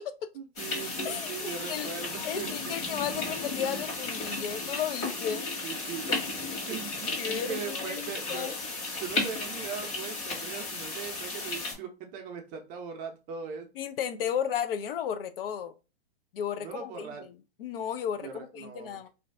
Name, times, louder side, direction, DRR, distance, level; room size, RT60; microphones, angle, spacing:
voice 1, 0.3-2.8 5.6-6.1 6.6-8.5 9.0-13.7 16.6-17.3 18.2-19.1, right 6 dB, 25° right, 0.6 m, -40 dB
sound 1, 0.6-11.7, left 3 dB, 40° left, 1.4 m, -34 dB
voice 2, 1.0-1.9 2.2-5.5 6.1-6.3 7.2-8.5 13.8-15.7 16.3-17.1 17.6-19.1, left 9 dB, 65° left, 0.5 m, -34 dB
2.6 x 2.2 x 3.3 m
hypercardioid pair, 130°, 31 cm